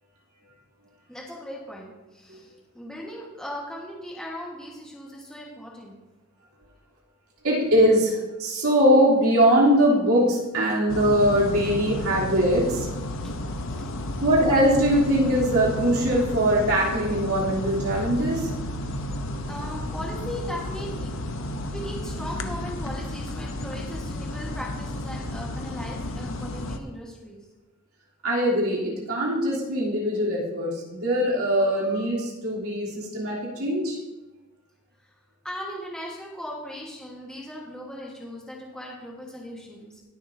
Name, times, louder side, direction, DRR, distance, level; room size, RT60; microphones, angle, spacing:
voice 1, 1.1-6.0 13.2-13.3 13.8-13.9 19.5-21.2 21.7-27.4 35.4-40.0, equal, 5° left, -4 dB, 1.5 m, -38 dB
voice 2, 7.4-12.9 14.2-18.6 28.2-34.0, equal, 85° right, -5 dB, 3.3 m, -22 dB
sound 1, 10.9-26.8, left 1 dB, 60° left, 0.8 m, -32 dB
20.0 x 6.9 x 2.8 m, 1.1 s
head